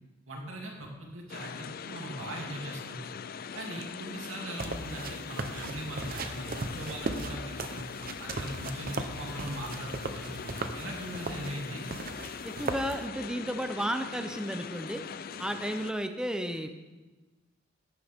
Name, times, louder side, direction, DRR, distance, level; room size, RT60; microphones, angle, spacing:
voice 1, 0.3-3.1 3.5-7.8 8.2-11.8, right 1 dB, 90° right, -1 dB, 2.8 m, -40 dB
sound 1, 1.3-15.9, left 6 dB, 50° left, 0.4 m, -42 dB
sound 2, 4.5-13.0, right 3 dB, 50° right, 0.8 m, -38 dB
voice 2, 12.4-15.0 15.4-16.7, equal, 5° right, 6 dB, 0.6 m, -33 dB
15.0 x 10.5 x 3.6 m, 1.2 s
head